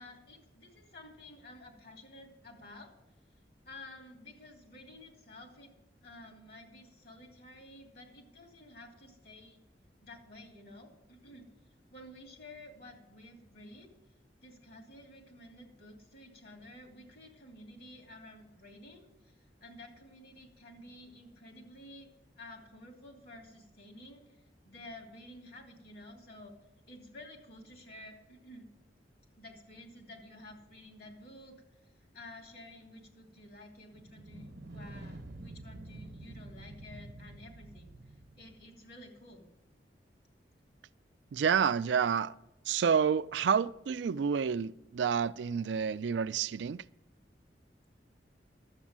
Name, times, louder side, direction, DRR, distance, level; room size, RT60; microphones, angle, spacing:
voice 1, 0.0-2.9 3.6-5.7 6.0-9.6 10.0-11.5 11.9-13.9 14.4-22.1 22.4-26.5 26.9-28.7 29.4-31.6 31.8-39.5, left 1 dB, 65° left, 2.8 m, -52 dB
sound 1, 33.9-38.8, right 2 dB, 70° right, 0.8 m, -48 dB
voice 2, 41.3-42.3 42.7-46.8, right 7 dB, 85° right, 0.4 m, -29 dB
12.0 x 8.0 x 7.4 m
head